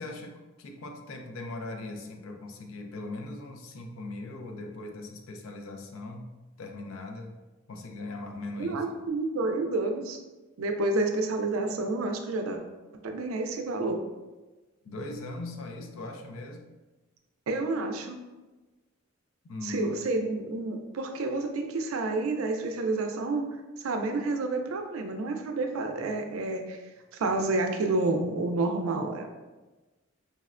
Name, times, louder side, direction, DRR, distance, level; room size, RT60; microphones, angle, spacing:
voice 1, 0.0-6.3 6.6-7.4 7.7-8.8 14.8-16.7 19.4-20.2, left 2 dB, 75° left, 4 dB, 0.4 m, -39 dB
voice 2, 8.6-10.2 10.6-12.6 13.0-14.0 17.5-18.2 19.6-26.8 27.1-29.3, right 2 dB, 80° right, 4 dB, 0.4 m, -29 dB
4.0 x 2.1 x 2.4 m, 1.2 s
head